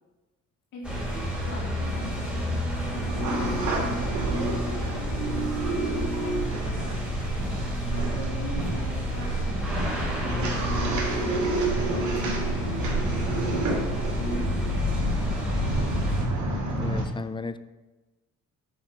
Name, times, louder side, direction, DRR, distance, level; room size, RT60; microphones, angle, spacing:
voice 1, 0.7-2.6 2.9-3.9 4.3-7.1 7.9-11.8 12.4-14.7, left 1 dB, 80° left, -3 dB, 1.8 m, -40 dB
sound 1, 0.8-16.2, equal, 5° right, 3.5 m, -30 dB
sound 2, 0.9-17.0, right 2 dB, 70° right, 2.7 m, -30 dB
voice 2, 16.8-17.6, left 3 dB, 15° left, 14 dB, 0.5 m, -34 dB
9.6 x 4.9 x 6.3 m, 1.2 s
cardioid pair, 90°, 30 cm